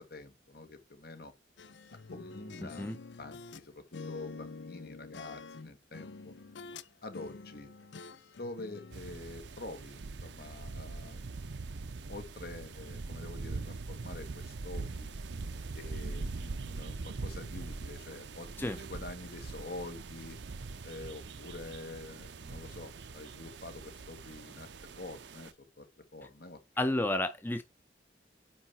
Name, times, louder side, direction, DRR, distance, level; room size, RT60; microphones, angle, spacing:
voice 1, 0.0-1.3 2.1-6.3 7.0-7.7 8.4-11.5 12.1-15.1 15.7-18.5 18.8-20.4 20.8-24.7 25.0-25.9 26.1-26.8, left 2 dB, 60° left, 1.5 m, -46 dB
sound 1, 1.6-3.6 3.9-6.9 7.1-9.0, left 4 dB, 85° left, 0.5 m, -47 dB
voice 2, 2.6-3.0 18.6-18.8 26.8-27.6, left 1 dB, 10° left, 0.6 m, -31 dB
sound 2, 8.9-25.5, right 3 dB, 80° right, 0.6 m, -42 dB
9.4 x 3.3 x 4.3 m
head